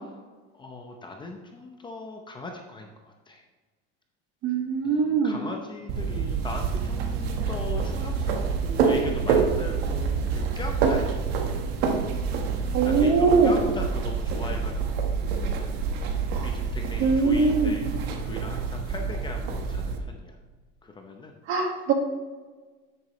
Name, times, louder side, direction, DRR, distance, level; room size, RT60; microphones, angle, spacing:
voice 1, 0.6-2.9 3.3-3.4 4.8-11.2 12.3-12.4 12.8-15.1 15.6-15.7 16.2-17.9 18.2-20.3 21.0-21.3, left 3 dB, 15° left, 2 dB, 0.7 m, -39 dB
voice 2, 4.4-5.4 12.7-13.6 16.3-16.4 17.0-17.8 21.5-21.9, right 4 dB, 45° right, 3 dB, 1.7 m, -22 dB
sound 1, 5.9-20.0, right 5 dB, 85° right, 1.3 m, -27 dB
9.6 x 8.9 x 3.1 m, 1.3 s
cardioid pair, 160°, 30 cm